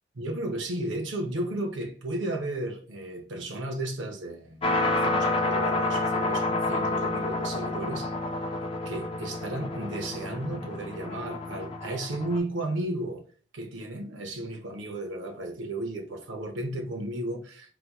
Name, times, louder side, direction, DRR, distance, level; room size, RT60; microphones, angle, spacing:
voice 1, 0.1-8.1 8.8-13.2 13.5-17.8, right 1 dB, 75° right, 0.8 m, -34 dB
sound 1, 4.6-12.4, left 2 dB, 30° left, 0.4 m, -29 dB
3.9 x 2.1 x 2.9 m
head